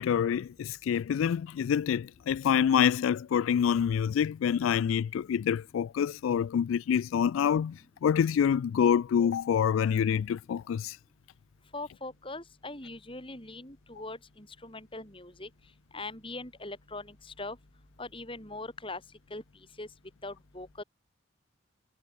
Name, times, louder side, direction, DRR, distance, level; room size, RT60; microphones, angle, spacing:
voice 1, 0.0-11.0, left 8 dB, 90° left, 0.3 m, -26 dB
voice 2, 11.7-15.5 15.9-17.6 18.0-19.0 19.3-19.4 19.8-19.9 20.2-20.8, left 2 dB, 25° left, 7.5 m, -41 dB
head